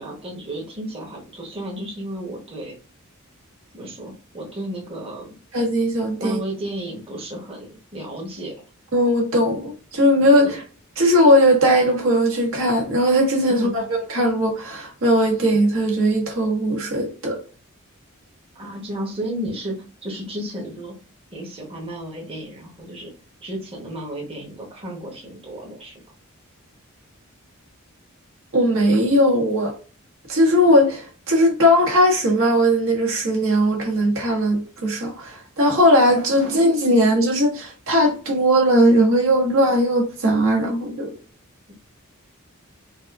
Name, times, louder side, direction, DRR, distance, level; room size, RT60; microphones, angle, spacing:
voice 1, 0.0-2.7 3.7-5.3 6.2-8.5 13.5-13.8 18.5-19.8 20.0-21.0 21.3-23.1 23.4-26.0 41.7-41.8, right 1 dB, 25° right, 1.0 m, -33 dB
voice 2, 5.5-6.4 8.9-10.6 11.0-13.8 14.1-17.4 28.5-29.8 30.3-41.1, equal, 70° right, 1.3 m, -18 dB
4.0 x 2.5 x 2.4 m
head